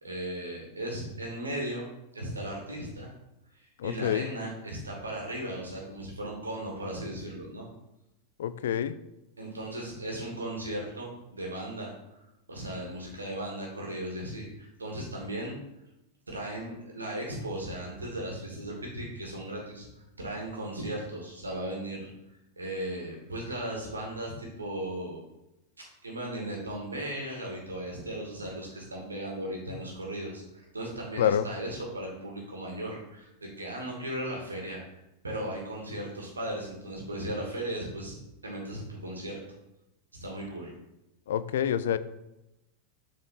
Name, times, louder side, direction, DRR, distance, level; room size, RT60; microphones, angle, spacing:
voice 1, 0.0-3.1 3.5-7.7 9.4-12.2 12.5-15.6 16.3-19.9 20.2-22.1 22.6-25.2 26.0-34.8 35.2-38.1 38.4-39.4 40.2-40.7, right 1 dB, 75° right, -1 dB, 2.2 m, -36 dB
voice 2, 3.8-4.3 8.4-9.0 31.2-31.5 41.3-42.0, left 9 dB, 60° left, 14 dB, 0.4 m, -27 dB
7.4 x 4.6 x 4.1 m, 0.91 s
figure-of-eight pair, 90°, 0 cm